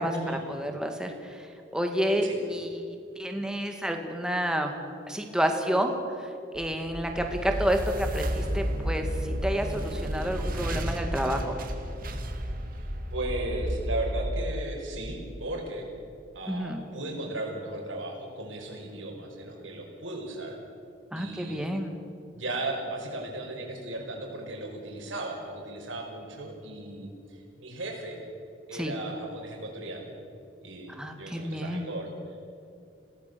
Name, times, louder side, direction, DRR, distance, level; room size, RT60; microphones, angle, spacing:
voice 1, 0.0-2.8 3.2-4.7 5.1-11.5 16.5-16.8 21.1-21.9 28.7-28.9 30.9-31.9, equal, 5° right, 4 dB, 2.1 m, -30 dB
sound 1, 6.5-15.7, equal, 45° right, 2.2 m, -32 dB
voice 2, 12.7-15.9 16.3-20.6 21.2-21.6 22.3-28.2 28.7-30.1 30.6-32.4, right 2 dB, 80° right, 1 dB, 5.6 m, -36 dB
27.0 x 18.5 x 7.0 m, 2.6 s
head